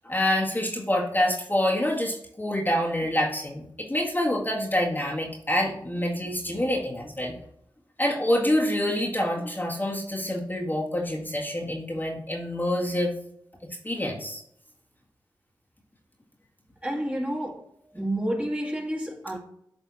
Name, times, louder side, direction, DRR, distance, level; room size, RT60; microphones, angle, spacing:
voice 1, 0.1-7.4 8.0-13.2 13.8-14.4, left 1 dB, 25° left, 1.7 m, -26 dB
voice 2, 16.8-17.7 17.9-19.4, right 1 dB, 15° right, 2.1 m, -29 dB
8.7 x 3.5 x 4.1 m
cardioid pair, 50°, 8 cm